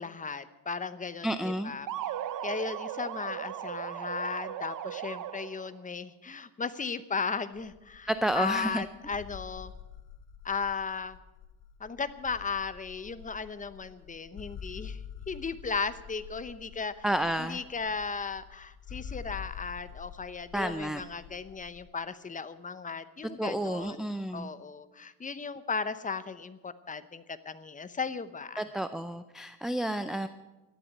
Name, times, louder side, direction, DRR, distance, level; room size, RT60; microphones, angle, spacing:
voice 1, 0.0-1.9 2.4-8.1 8.3-9.7 10.4-11.2 11.8-15.0 15.3-17.0 17.4-24.1 24.3-28.6, left 5 dB, 20° left, 13 dB, 0.8 m, -36 dB
voice 2, 1.2-1.7 8.1-8.8 17.0-17.6 20.5-21.0 23.4-24.5 28.6-30.3, right 1 dB, ahead, 10 dB, 0.5 m, -30 dB
sound 1, 1.9-5.7, right 11 dB, 50° right, 0.8 m, -37 dB
sound 2, 7.5-21.9, left 7 dB, 70° left, 1.9 m, -47 dB
13.5 x 11.0 x 8.9 m, 1.1 s
cardioid pair, 120°, 42 cm